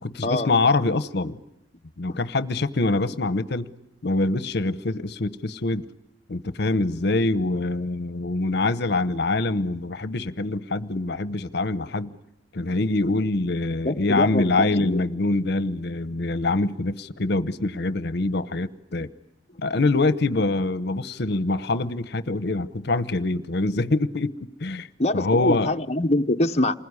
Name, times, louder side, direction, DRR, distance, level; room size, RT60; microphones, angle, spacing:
voice 1, 0.0-1.4 2.0-3.7 4.0-5.9 6.3-12.2 12.5-19.1 19.6-24.4 24.6-24.9 25.1-25.7, left 2 dB, 65° left, 0.9 m, -24 dB
voice 2, 13.8-15.0 25.0-26.7, left 1 dB, 35° left, 1.0 m, -24 dB
28.0 x 21.0 x 9.7 m
head